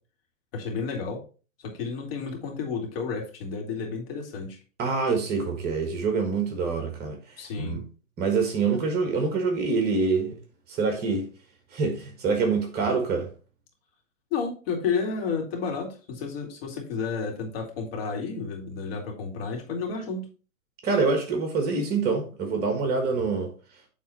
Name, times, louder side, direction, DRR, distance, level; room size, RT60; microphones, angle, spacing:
voice 1, 0.5-1.2 1.6-4.6 7.4-7.9 8.7-8.8 14.3-20.3, left 5 dB, 45° left, 2.5 m, -31 dB
voice 2, 4.8-7.2 7.6-7.8 8.2-10.4 10.7-11.3 11.7-13.3 20.8-23.5, right 4 dB, 25° right, 1.5 m, -25 dB
8.4 x 3.6 x 4.2 m
hypercardioid pair, 125°, 40 cm